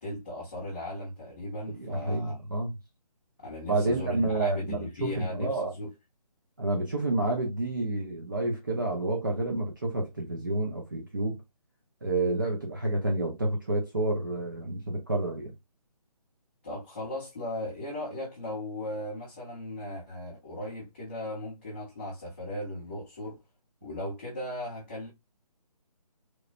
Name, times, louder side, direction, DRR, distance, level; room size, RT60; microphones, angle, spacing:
voice 1, 0.0-2.4 3.4-5.9 16.6-23.4 23.8-25.1, left 1 dB, 15° left, 0.5 m, -37 dB
voice 2, 1.8-2.7 3.7-5.7 6.6-11.4 12.0-15.5, right 2 dB, 30° right, 0.4 m, -29 dB
3.0 x 2.0 x 2.3 m
hypercardioid pair, 170°, 21 cm